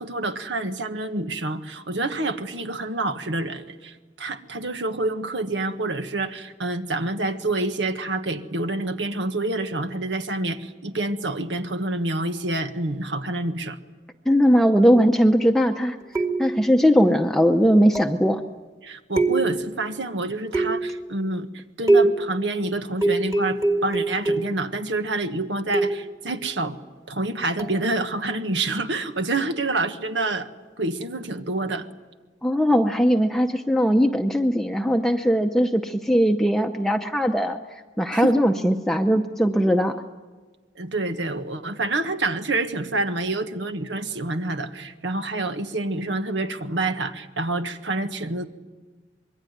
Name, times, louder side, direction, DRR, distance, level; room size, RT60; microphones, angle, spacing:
voice 1, 0.0-13.8 18.8-26.8 27.1-30.5 30.8-31.9 38.1-38.4 40.8-48.5, right 2 dB, 80° right, 8 dB, 1.5 m, -27 dB
voice 2, 14.3-16.0 16.4-18.4 32.4-40.0, equal, ahead, 3 dB, 0.8 m, -20 dB
sound 1, 16.1-16.7 17.9-18.3 19.2-19.8 20.5-21.0 21.9-22.4 23.0-24.7 25.7-26.2 27.6-27.8, right 2 dB, 20° right, 1.8 m, -23 dB
26.0 x 22.0 x 9.4 m, 1.3 s
head